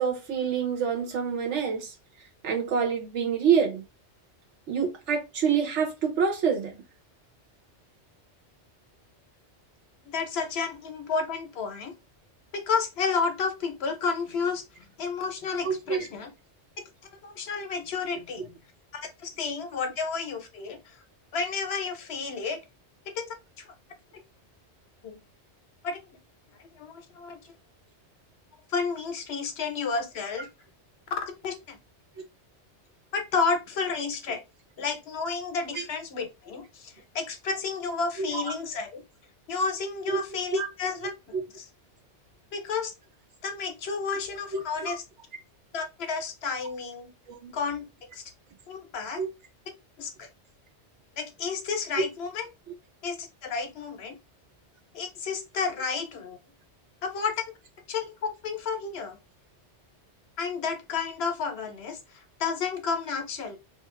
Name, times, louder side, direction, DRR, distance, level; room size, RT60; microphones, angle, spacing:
voice 1, 0.0-1.9 2.4-3.8 4.7-6.8 15.6-16.1 35.7-35.8 38.2-38.4 40.1-40.2 40.5-40.7 44.5-44.9 47.4-47.5 49.2-49.3 52.0-52.1, right 6 dB, 85° right, 1.2 m, -26 dB
voice 2, 10.0-12.0 12.5-14.6 15.0-16.3 17.2-18.5 19.2-21.0 21.3-22.6 23.1-23.4 25.0-25.2 25.8-26.1 26.8-27.4 28.7-30.5 31.4-31.8 33.1-34.4 34.8-39.0 39.5-41.1 41.6-41.7 42.5-42.9 43.4-45.0 45.7-47.1 47.5-48.2 48.7-49.2 50.0-50.3 51.2-52.5 53.0-54.2 54.9-56.4 57.0-57.4 57.9-59.2 60.4-63.6, left 5 dB, 65° left, 0.9 m, -31 dB
2.6 x 2.4 x 3.0 m
omnidirectional pair, 1.2 m